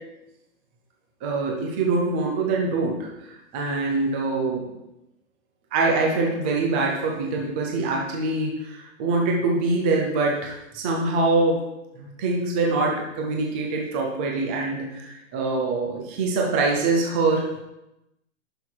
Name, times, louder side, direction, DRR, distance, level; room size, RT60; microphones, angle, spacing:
voice 1, 1.2-4.7 5.7-11.6 11.9-17.6, right 3 dB, 10° right, -1 dB, 0.3 m, -24 dB
11.5 x 5.6 x 4.5 m, 0.89 s
hypercardioid pair, 145°, 41 cm